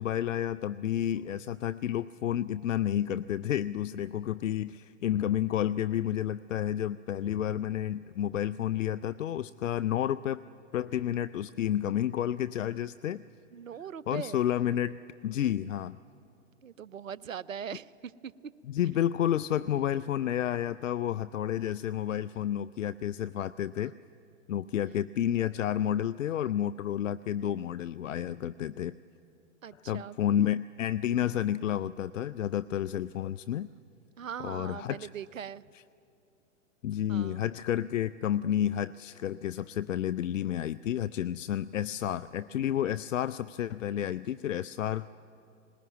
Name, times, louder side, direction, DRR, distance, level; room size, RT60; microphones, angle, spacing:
voice 1, 0.0-10.4 10.7-13.2 14.1-16.0 18.7-23.9 24.5-29.0 29.9-33.7 34.4-35.1 36.8-45.1, left 11 dB, 75° left, 15 dB, 0.5 m, -30 dB
voice 2, 13.5-14.4 16.6-18.3 29.6-30.2 34.2-35.6 37.1-37.4, right 8 dB, 85° right, 22 dB, 0.5 m, -40 dB
20.0 x 19.5 x 9.4 m, 2.6 s
figure-of-eight pair, 105°, 39 cm